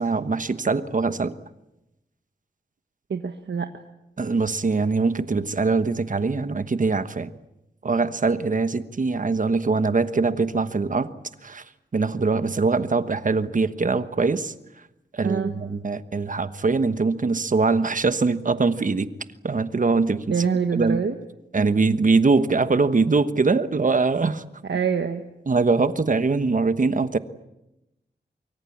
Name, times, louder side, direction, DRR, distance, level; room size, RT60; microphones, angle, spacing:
voice 1, 0.0-1.3 4.2-7.3 7.8-11.1 11.4-11.6 11.9-14.5 15.2-19.1 19.4-20.2 20.7-21.0 21.5-24.4 25.5-27.2, right 4 dB, 45° right, 12 dB, 1.2 m, -22 dB
voice 2, 3.1-3.7 15.2-15.5 20.3-21.2 21.6-21.7 24.7-25.2, right 6 dB, 85° right, 6 dB, 1.4 m, -25 dB
24.5 x 24.0 x 8.6 m, 0.92 s
wide cardioid pair, 110°, 18 cm